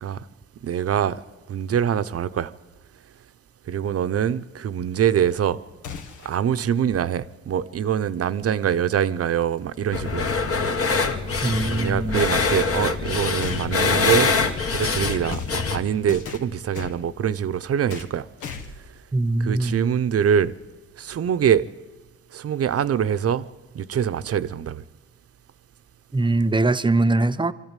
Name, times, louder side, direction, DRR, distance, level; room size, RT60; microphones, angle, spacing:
voice 1, 0.6-1.2 1.5-2.5 3.7-5.6 6.2-10.2 11.7-14.3 14.7-18.3 19.4-20.5 21.0-21.6 22.3-23.5 23.7-24.8, right 8 dB, 50° right, 0.8 m, -24 dB
sound 1, 5.8-6.4 8.5-8.6 9.7-9.8 13.4-15.7 16.1-17.0 17.9-18.2 18.4-18.9, left 5 dB, 85° left, 1.7 m, -36 dB
sound 2, 9.9-15.8, left 4 dB, 50° left, 2.0 m, -24 dB
voice 2, 11.4-12.3 19.1-19.8 26.1-27.5, right 2 dB, 15° right, 0.8 m, -22 dB
24.0 x 13.0 x 9.1 m
cardioid pair, 90°, 30 cm